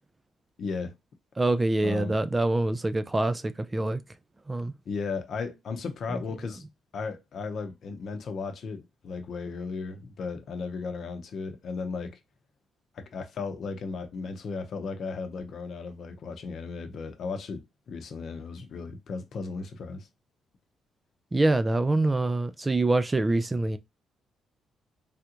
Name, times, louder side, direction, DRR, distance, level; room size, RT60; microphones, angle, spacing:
voice 1, 0.6-0.9 1.8-2.2 4.9-6.6 6.9-12.2 12.9-20.1, left 4 dB, 60° left, 0.7 m, -35 dB
voice 2, 1.4-4.0 4.5-4.7 6.1-6.2 21.3-23.8, right 2 dB, 20° right, 0.3 m, -25 dB
3.4 x 2.4 x 2.9 m
cardioid pair, 90°, 0 cm